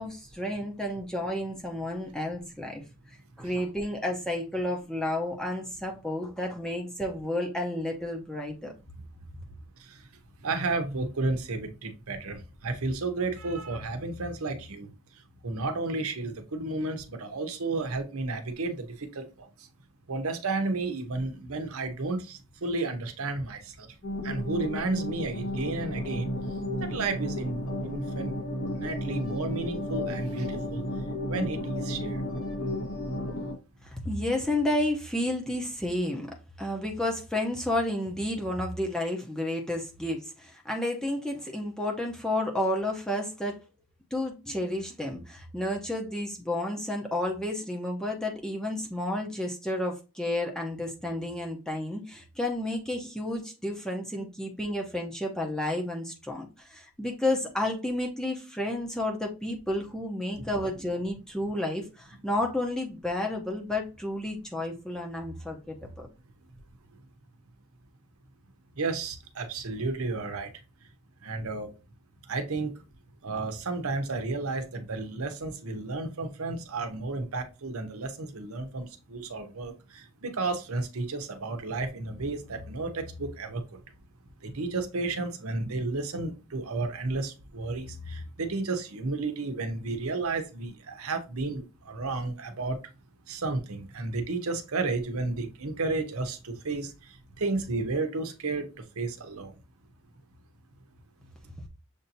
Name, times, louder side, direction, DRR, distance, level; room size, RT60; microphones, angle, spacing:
voice 1, 0.0-8.7 33.8-43.6 44.1-66.1, left 1 dB, 5° left, 0.7 m, -31 dB
voice 2, 10.4-14.9 15.4-19.7 20.1-24.0 24.2-26.3 26.8-28.3 28.7-30.8 31.3-32.3 60.3-60.5 68.8-70.5 71.2-71.7 72.3-72.8 73.2-83.8 84.4-92.8 93.3-99.5, right 3 dB, 80° right, 0.8 m, -32 dB
sound 1, 24.0-33.5, left 1 dB, 70° left, 1.3 m, -33 dB
6.7 x 2.7 x 2.7 m
head